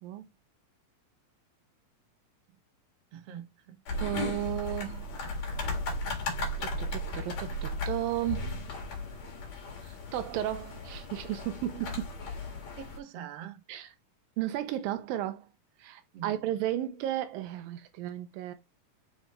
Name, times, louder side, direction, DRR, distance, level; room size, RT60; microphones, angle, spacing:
voice 1, 3.1-4.0 12.7-13.6 16.1-16.4, right 9 dB, 65° right, 1.5 m, -44 dB
sound 1, 3.9-13.0, left 2 dB, 50° left, 3.1 m, -36 dB
voice 2, 4.0-5.1 6.6-8.7 9.8-12.1 13.7-13.9 14.4-15.5 15.8-18.5, right 13 dB, 85° right, 2.4 m, -34 dB
5.8 x 4.6 x 4.3 m
omnidirectional pair, 4.1 m